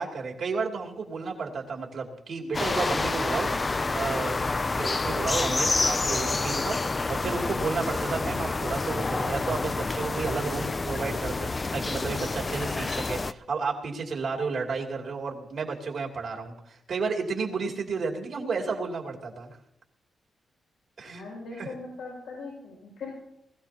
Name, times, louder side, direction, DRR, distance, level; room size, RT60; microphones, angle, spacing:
voice 1, 0.0-3.5 3.9-4.4 4.8-19.5 21.0-21.2 21.6-21.7, right 4 dB, 55° right, 1 dB, 2.7 m, -32 dB
sound 1, 2.5-13.3, left 3 dB, 25° left, 0.4 m, -28 dB
voice 2, 21.0-23.2, left 3 dB, 90° left, -5 dB, 5.9 m, -40 dB
21.0 x 14.5 x 2.9 m, 0.80 s
wide cardioid pair, 155°, 0 cm